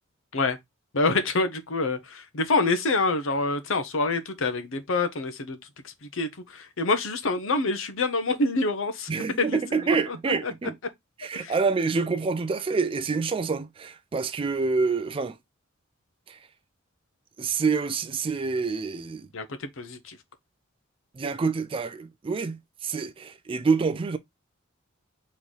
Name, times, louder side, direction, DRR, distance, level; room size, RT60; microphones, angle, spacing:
voice 1, 0.9-5.6 5.8-9.1 9.4-10.5 11.3-11.5 19.3-20.2, left 3 dB, 70° left, 0.8 m, -27 dB
voice 2, 9.1-10.7 11.2-15.4 16.3-16.4 17.4-19.3 21.2-24.2, right 4 dB, 25° right, 0.3 m, -27 dB
3.9 x 3.1 x 3.8 m
head